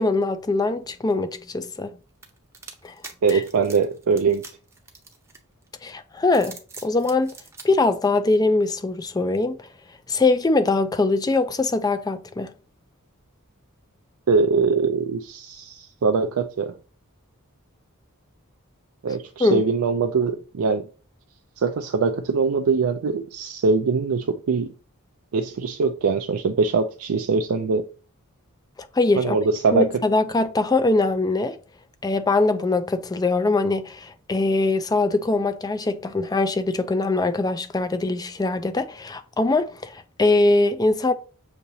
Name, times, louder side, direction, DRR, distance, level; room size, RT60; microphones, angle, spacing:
voice 1, 0.0-2.0 2.8-2.9 3.3-3.4 5.8-6.6 6.8-7.3 7.6-9.7 10.1-12.5 19.4-19.6 29.0-29.4 29.7-31.6 32.0-41.1, left 2 dB, 15° left, 0.4 m, -22 dB
sound 1, 2.2-5.7 6.2-7.7, right 4 dB, 10° right, 0.7 m, -43 dB
voice 2, 3.2-4.4 14.3-16.7 19.0-20.8 21.6-24.7 25.3-27.8 29.2-29.9, right 4 dB, 70° right, 0.4 m, -22 dB
6.8 x 2.9 x 2.7 m
head